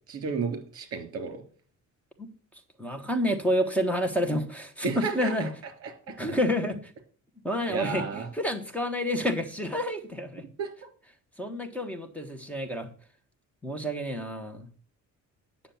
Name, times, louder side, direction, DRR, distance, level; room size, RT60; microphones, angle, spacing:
voice 1, 0.1-1.4 4.8-5.5 5.8-6.1 7.7-8.3 10.6-10.7, right 5 dB, 50° right, 6 dB, 3.0 m, -32 dB
voice 2, 2.8-5.5 6.2-6.9 7.4-10.4 11.4-12.9 13.6-14.7, equal, 5° left, 5 dB, 1.4 m, -29 dB
9.9 x 6.9 x 7.1 m, 0.43 s
cardioid pair, 160°, 30 cm